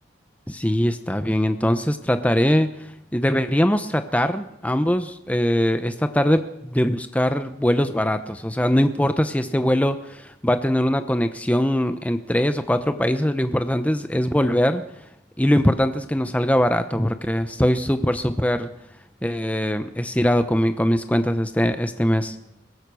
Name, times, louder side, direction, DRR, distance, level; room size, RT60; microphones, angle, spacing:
voice 1, 0.5-2.7 3.1-14.8 15.4-18.7 19.2-22.4, equal, 10° left, 9 dB, 0.9 m, -21 dB
22.5 x 19.0 x 6.3 m, 0.85 s
head